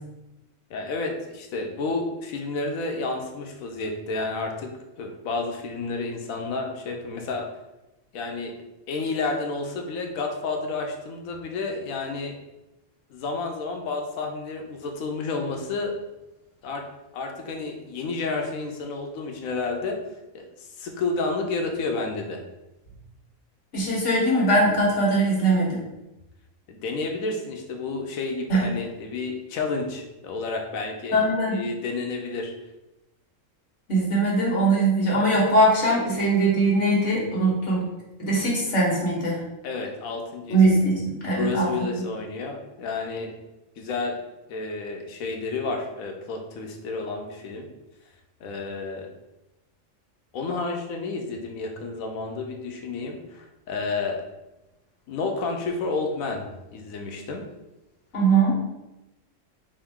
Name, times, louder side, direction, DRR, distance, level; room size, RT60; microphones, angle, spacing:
voice 1, 0.7-7.5 8.1-8.5 8.9-12.3 13.1-15.9 16.6-16.9 17.1-20.0 20.3-20.4 20.8-22.4 26.7-31.2 31.5-32.5 39.6-40.6 41.2-43.3 43.8-44.2 44.5-47.7 48.4-49.1 50.3-54.2 55.1-57.4, left 3 dB, 90° left, 3 dB, 1.1 m, -30 dB
voice 2, 23.7-25.8 28.5-28.7 31.1-31.6 33.9-37.8 38.2-39.4 40.5-41.7 58.1-58.5, right 2 dB, 65° left, -5 dB, 1.7 m, -21 dB
5.1 x 2.7 x 3.5 m, 0.96 s
omnidirectional pair, 1.4 m